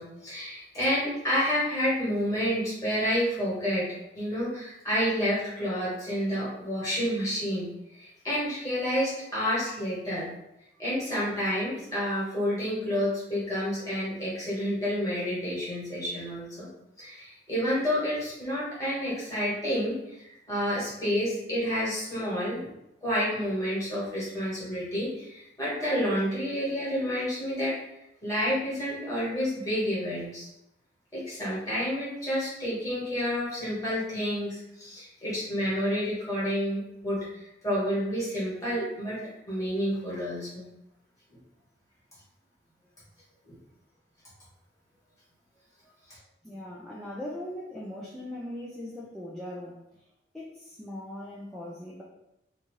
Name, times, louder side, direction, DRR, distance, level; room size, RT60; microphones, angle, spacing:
voice 1, 0.0-3.9 4.1-10.3 10.8-16.7 17.0-22.6 23.0-27.7 28.2-30.5 31.1-39.2 39.5-40.7 43.4-43.6, equal, 20° left, -9 dB, 1.3 m, -29 dB
voice 2, 46.4-49.8 50.3-52.0, left 1 dB, ahead, -6 dB, 0.3 m, -39 dB
2.7 x 2.3 x 3.0 m, 0.86 s
head